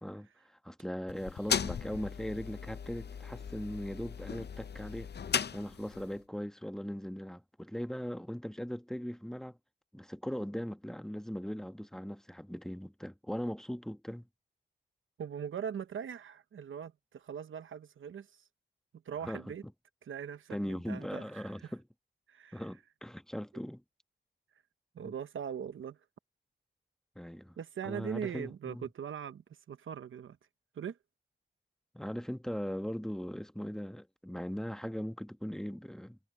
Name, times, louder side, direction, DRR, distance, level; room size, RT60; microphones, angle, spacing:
voice 1, 0.0-5.1 5.5-9.6 9.9-14.3 19.2-19.4 20.5-21.8 22.5-23.8 25.0-25.1 27.1-27.6 27.8-28.9 31.9-36.2, equal, ahead, 1.2 m, -39 dB
sound 1, 1.1-6.2, left 7 dB, 55° left, 0.6 m, -37 dB
voice 2, 15.2-18.3 19.1-19.6 20.0-21.7 22.3-22.6 24.9-26.0 27.6-30.4 30.8-31.0, right 8 dB, 85° right, 0.9 m, -41 dB
cardioid pair, 45°, 20 cm